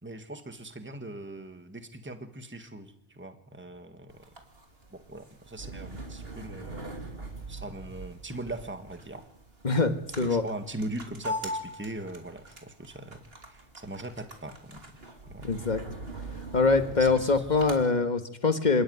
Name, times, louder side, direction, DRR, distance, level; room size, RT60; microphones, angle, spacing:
voice 1, 0.0-4.2 4.9-7.1 7.5-9.2 10.2-14.8 15.3-15.5 16.9-17.4, right 2 dB, 10° right, 8 dB, 1.6 m, -40 dB
sound 1, 4.1-17.8, right 1 dB, 55° right, 3.2 m, -41 dB
voice 2, 9.6-10.4 15.4-15.8 16.5-18.8, left 4 dB, 40° left, 9 dB, 1.7 m, -24 dB
27.0 x 12.5 x 9.5 m, 0.72 s
omnidirectional pair, 1.2 m